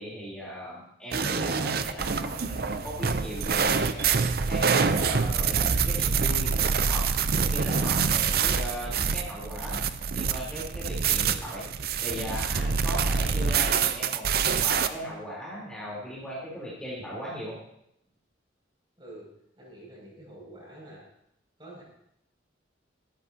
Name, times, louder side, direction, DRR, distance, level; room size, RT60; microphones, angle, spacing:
voice 1, 0.0-7.1 7.3-9.8 10.1-14.3 14.6-17.6, equal, 5° left, -8 dB, 3.7 m, -38 dB
sound 1, 1.1-14.9, right 6 dB, 50° right, 0.6 m, -26 dB
voice 2, 19.0-19.3 19.6-21.0 21.6-21.8, right 1 dB, 25° right, -3 dB, 6.4 m, -47 dB
16.5 x 14.0 x 2.9 m, 0.76 s
head